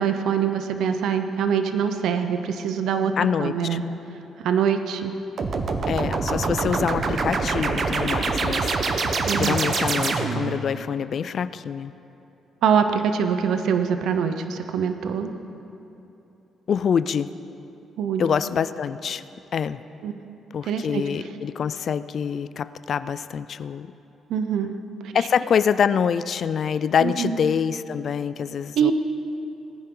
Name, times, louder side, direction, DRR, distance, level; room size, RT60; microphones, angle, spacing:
voice 1, 0.0-3.1 3.4-3.8 4.4-5.1 9.3-9.5 12.6-15.3 18.0-18.2 20.0-20.1 20.7-21.0 24.3-25.1 27.0-27.4 28.8-28.9, right 7 dB, 80° right, 8 dB, 0.7 m, -24 dB
voice 2, 3.2-3.8 5.9-11.9 16.7-17.3 18.2-19.2 19.5-19.8 20.5-23.9 25.1-28.9, left 7 dB, 55° left, 15 dB, 0.3 m, -25 dB
sound 1, 5.4-10.6, right 4 dB, 50° right, 0.9 m, -25 dB
18.5 x 10.0 x 3.8 m, 2.9 s
cardioid pair, 90°, 0 cm